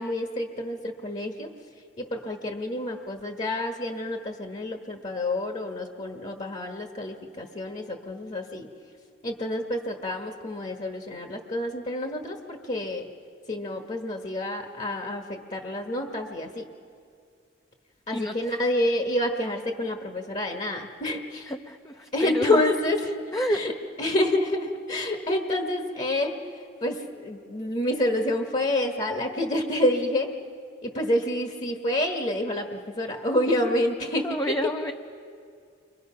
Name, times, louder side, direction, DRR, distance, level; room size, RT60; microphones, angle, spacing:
voice 1, 0.0-1.5 2.0-8.7 9.2-13.1 13.5-16.7 18.1-21.5 22.1-23.1 23.5-23.7 24.0-26.4 26.8-30.3 30.8-34.7, left 1 dB, 40° left, 3 dB, 1.4 m, -28 dB
voice 2, 21.5-22.6 23.3-23.6 34.2-34.9, equal, 15° left, 4 dB, 0.6 m, -29 dB
30.0 x 24.0 x 5.8 m, 2.3 s
head